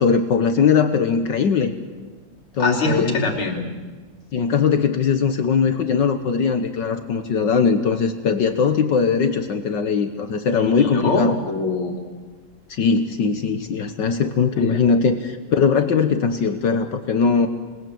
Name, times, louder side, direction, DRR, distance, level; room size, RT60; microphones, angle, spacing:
voice 1, 0.0-1.7 2.6-3.1 4.3-11.3 12.7-17.5, left 5 dB, 60° left, 8 dB, 1.7 m, -20 dB
voice 2, 2.6-3.6 10.6-12.0 14.6-14.8, left 3 dB, 85° left, 2 dB, 3.9 m, -23 dB
27.5 x 20.5 x 7.7 m, 1.3 s
omnidirectional pair, 2.3 m